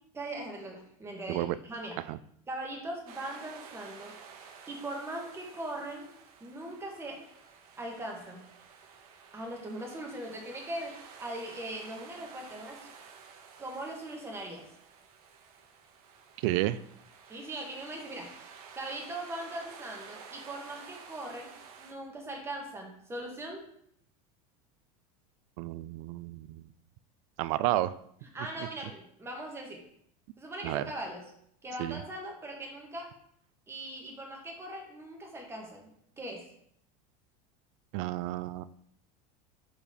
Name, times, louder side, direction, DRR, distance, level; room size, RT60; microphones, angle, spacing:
voice 1, 0.1-2.0 2.5-4.2 4.7-6.1 6.4-7.2 7.8-8.4 9.3-12.8 13.6-14.7 17.3-18.5 18.7-21.5 21.8-23.6 28.3-29.8 30.4-31.2 31.6-33.1 33.7-35.9 36.2-36.5, right 1 dB, 15° right, 0 dB, 1.5 m, -40 dB
sound 1, 3.1-21.9, right 6 dB, 85° right, 1.0 m, -52 dB
voice 2, 16.4-16.8 25.6-26.7 27.4-28.0 30.6-30.9 31.8-32.0 37.9-38.6, right 15 dB, 65° right, 16 dB, 0.4 m, -31 dB
4.8 x 4.3 x 5.1 m, 0.70 s
supercardioid pair, 145°, 18 cm